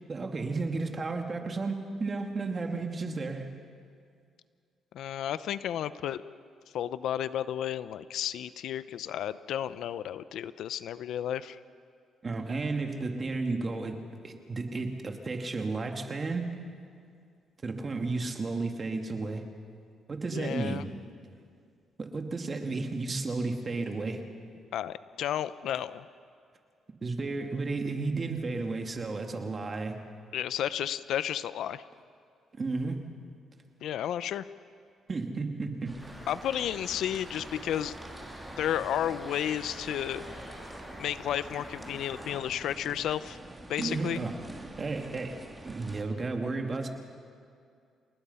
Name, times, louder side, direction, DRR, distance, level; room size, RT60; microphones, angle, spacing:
voice 1, 0.1-3.5 12.2-16.5 17.6-19.4 20.1-20.8 22.0-24.2 27.0-30.0 32.6-33.1 35.1-36.1 40.3-40.4 43.8-44.3 44.8-45.4 45.6-46.9, right 3 dB, 35° right, 4 dB, 2.4 m, -33 dB
voice 2, 4.9-6.2 6.7-11.6 20.3-20.9 24.7-26.1 30.3-31.8 33.8-34.4 36.3-37.9 38.6-40.2 41.0-43.4 43.7-44.2, left 10 dB, 75° left, 15 dB, 0.6 m, -32 dB
sound 1, 35.8-46.0, right 2 dB, 15° right, 2.9 m, -47 dB
sound 2, 36.0-42.4, equal, 5° left, 6.9 m, -46 dB
28.5 x 19.5 x 5.7 m, 2.3 s
cardioid pair, 90°, 0 cm